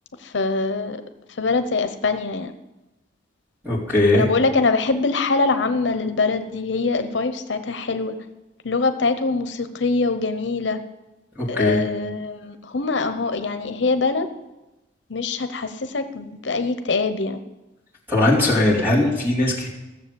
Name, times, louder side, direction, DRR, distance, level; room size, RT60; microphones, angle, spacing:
voice 1, 0.2-1.0 1.4-2.5 4.1-8.1 8.6-10.8 11.5-14.3 15.1-17.4, left 3 dB, 85° left, 9 dB, 0.8 m, -23 dB
voice 2, 3.6-4.3 11.4-11.8 18.1-19.7, left 2 dB, 10° right, -4 dB, 3.7 m, -19 dB
15.5 x 7.2 x 6.9 m, 1.0 s
head